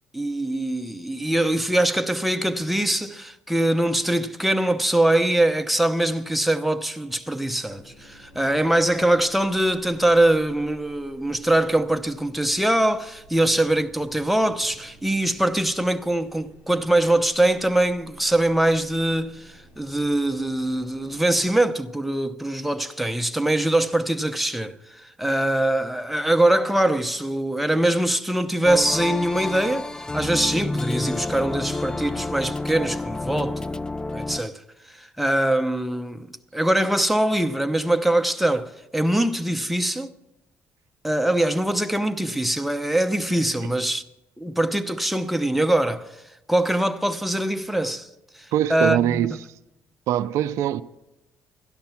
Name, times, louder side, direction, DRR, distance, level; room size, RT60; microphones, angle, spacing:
voice 1, 0.1-33.8 34.1-34.6 35.0-40.1 41.0-44.0 44.4-46.1 46.5-48.1 48.4-49.3, right 1 dB, ahead, 0.7 m, -23 dB
sound 1, 7.6-21.5, equal, 85° left, 6.0 m, -51 dB
sound 2, 28.6-34.4, left 2 dB, 15° left, 0.4 m, -29 dB
voice 2, 48.5-49.3 50.1-50.8, right 11 dB, 80° right, 0.4 m, -22 dB
12.0 x 11.5 x 5.8 m
supercardioid pair, 75°, 5 cm